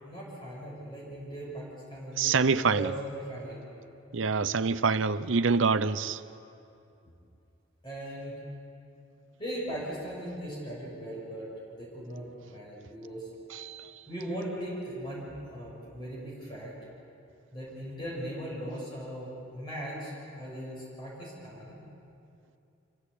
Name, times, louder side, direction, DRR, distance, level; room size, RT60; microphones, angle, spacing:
voice 1, 0.0-3.6 7.8-8.4 9.4-11.5 11.7-13.3 14.1-16.7 17.5-21.8, right 1 dB, 25° left, 6.6 m, -39 dB
voice 2, 2.2-2.9 4.1-6.2 13.5-13.9, right 4 dB, 80° right, 0.7 m, -26 dB
27.0 x 16.0 x 8.3 m
head